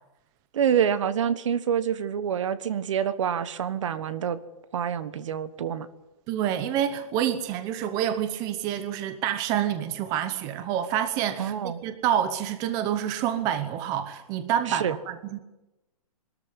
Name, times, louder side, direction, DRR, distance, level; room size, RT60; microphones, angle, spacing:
voice 1, 0.5-4.4 4.7-5.9 11.4-11.8 14.7-14.9, right 8 dB, 55° right, 14 dB, 1.4 m, -27 dB
voice 2, 6.3-15.4, right 10 dB, 20° right, 10 dB, 0.9 m, -28 dB
22.0 x 13.5 x 9.8 m, 1.0 s
hypercardioid pair, 170°, 19 cm